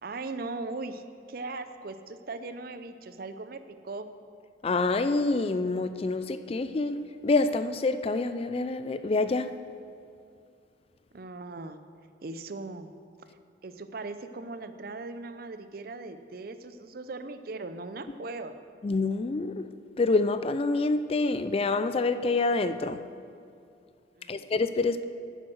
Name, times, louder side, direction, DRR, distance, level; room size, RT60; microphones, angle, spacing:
voice 1, 0.0-1.0 1.3-4.1 11.1-11.8 12.2-12.9 13.6-18.5 24.2-24.5, right 3 dB, 50° right, 10 dB, 0.6 m, -39 dB
voice 2, 4.6-9.5 18.8-19.7 20.0-23.0 24.3-25.0, left 3 dB, 30° left, 11 dB, 0.3 m, -27 dB
10.0 x 9.0 x 6.3 m, 2.3 s
head